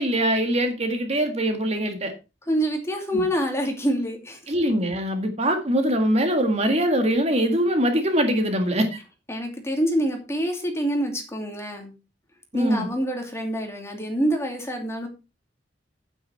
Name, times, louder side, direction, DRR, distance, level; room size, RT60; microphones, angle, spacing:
voice 1, 0.0-2.1 3.1-3.2 4.5-9.0 12.5-12.9, equal, 35° right, 6 dB, 1.8 m, -22 dB
voice 2, 2.5-4.4 9.3-11.9 12.5-15.1, equal, 15° left, 3 dB, 2.6 m, -26 dB
9.4 x 9.2 x 4.3 m, 0.28 s
head